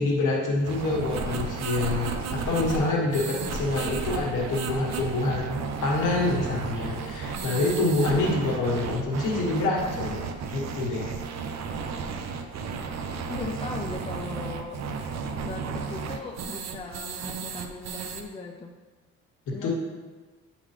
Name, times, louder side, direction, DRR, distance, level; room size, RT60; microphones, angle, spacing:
voice 1, 0.0-10.2 10.5-11.1 19.5-19.7, left 2 dB, 90° left, -2 dB, 1.5 m, -26 dB
sound 1, 0.6-18.2, right 5 dB, 60° right, 0.6 m, -33 dB
voice 2, 13.1-14.8 15.4-18.7 19.5-19.7, left 3 dB, 20° left, 2 dB, 0.5 m, -38 dB
8.5 x 3.9 x 3.3 m, 1.3 s
cardioid pair, 90°, 30 cm